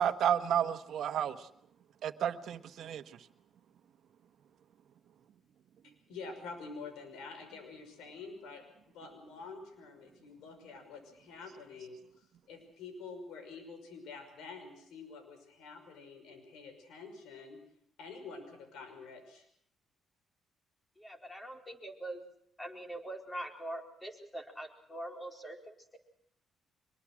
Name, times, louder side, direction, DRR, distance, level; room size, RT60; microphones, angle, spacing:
voice 1, 0.0-1.4 2.0-3.0, right 9 dB, 70° right, 8 dB, 1.3 m, -31 dB
voice 2, 6.1-8.6 8.9-17.6 18.0-19.5, left 4 dB, 90° left, 7 dB, 5.9 m, -47 dB
voice 3, 21.0-22.2 22.6-26.0, right 1 dB, 15° left, 2 dB, 4.5 m, -43 dB
24.0 x 22.0 x 6.3 m, 0.68 s
cardioid pair, 90°, 0 cm